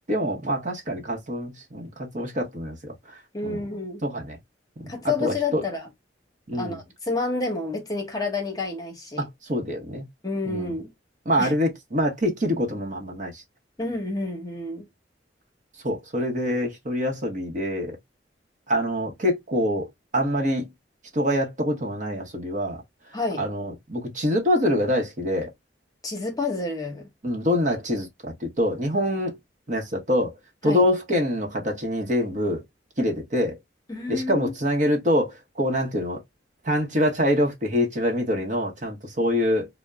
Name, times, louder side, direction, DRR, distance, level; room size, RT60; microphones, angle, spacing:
voice 1, 0.1-2.9 3.4-3.6 4.0-4.4 4.8-4.9 5.2-5.6 6.5-6.8 9.2-10.1 10.5-10.7 11.3-13.4 15.8-18.0 18.7-19.9 20.1-20.7 21.1-22.8 23.4-25.5 27.2-29.4 29.7-30.3 30.6-32.6 33.0-33.6 34.1-36.2 36.6-39.7, equal, 45° right, 0.9 m, -25 dB
voice 2, 3.3-4.0 4.9-5.9 6.6-9.3 10.2-10.9 11.4-11.5 13.8-14.8 23.1-23.5 26.0-27.1 30.6-30.9 33.9-34.5, left 3 dB, 20° left, 0.9 m, -29 dB
2.5 x 2.1 x 3.3 m
head